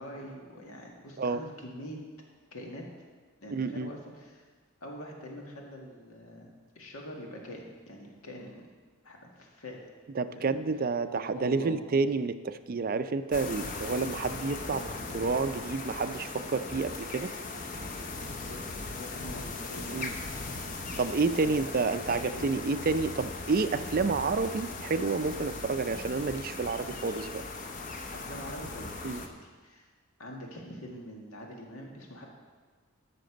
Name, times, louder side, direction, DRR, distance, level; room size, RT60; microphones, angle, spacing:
voice 1, 0.0-2.0 2.5-2.9 3.4-4.5 4.8-8.7 9.0-9.8 10.3-10.6 11.3-11.9 18.4-18.6 19.0-20.4 21.4-22.5 28.1-29.9 30.2-32.2, equal, 80° left, 0 dB, 1.9 m, -44 dB
voice 2, 3.5-3.9 10.2-17.3 19.9-20.1 21.0-27.4 29.0-29.2, right 4 dB, 40° right, 11 dB, 0.4 m, -29 dB
sound 1, 13.3-29.3, left 3 dB, 35° left, 0.8 m, -39 dB
13.0 x 6.7 x 5.1 m, 1.4 s
head